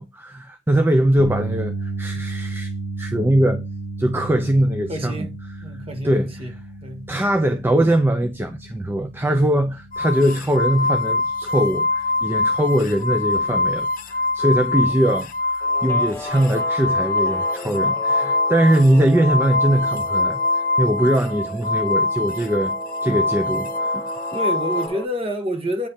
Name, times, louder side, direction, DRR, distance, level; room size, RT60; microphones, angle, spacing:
voice 1, 0.0-2.7 3.0-3.7 4.0-5.3 6.0-6.3 7.1-20.4 20.8-22.7 23.0-24.1, right 1 dB, 10° right, 0.4 m, -21 dB
sound 1, 1.2-13.4 13.8-14.0 16.2-16.3, right 3 dB, 90° right, 1.3 m, -34 dB
voice 2, 4.9-5.3 5.6-6.5 6.8-7.1 14.7-14.9 24.3-25.9, equal, 30° right, 1.4 m, -28 dB
sound 2, 9.9-24.9, left 2 dB, 45° left, 0.8 m, -23 dB
Guitar, 15.6-25.0, right 2 dB, 10° left, 0.8 m, -35 dB
8.5 x 3.1 x 4.3 m
head